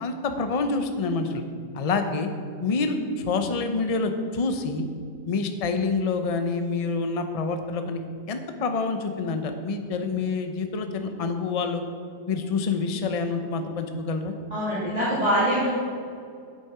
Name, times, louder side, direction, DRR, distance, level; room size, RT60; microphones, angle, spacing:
voice 1, 0.0-1.4 1.7-2.3 2.6-4.8 5.3-8.0 8.3-11.8 12.3-14.3, left 4 dB, 40° left, 6 dB, 0.5 m, -27 dB
voice 2, 14.5-15.7, equal, 25° right, -11 dB, 2.5 m, -23 dB
8.6 x 8.5 x 5.7 m, 2.3 s
omnidirectional pair, 1.7 m